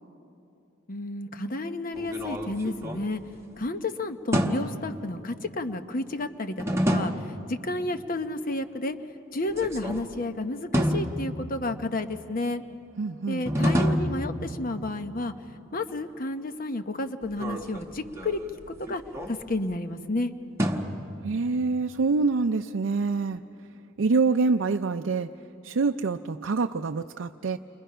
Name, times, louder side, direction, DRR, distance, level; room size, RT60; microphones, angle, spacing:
voice 1, 0.9-3.2 3.6-6.6 6.9-9.0 9.3-12.6 13.3-15.3 15.7-18.4 18.8-19.0 19.3-20.3, left 2 dB, 45° left, 9 dB, 0.9 m, -31 dB
sound 1, 1.9-3.7 4.3-5.0 6.6-7.5 9.5-10.2 10.7-11.8 13.5-14.9 17.2-19.7 20.6-21.5, equal, 15° right, 1.2 m, -29 dB
voice 2, 13.0-13.4 21.2-23.4 24.0-25.3 25.6-27.6, right 4 dB, 75° right, 5 dB, 0.5 m, -26 dB
29.0 x 23.5 x 5.6 m, 2.7 s
head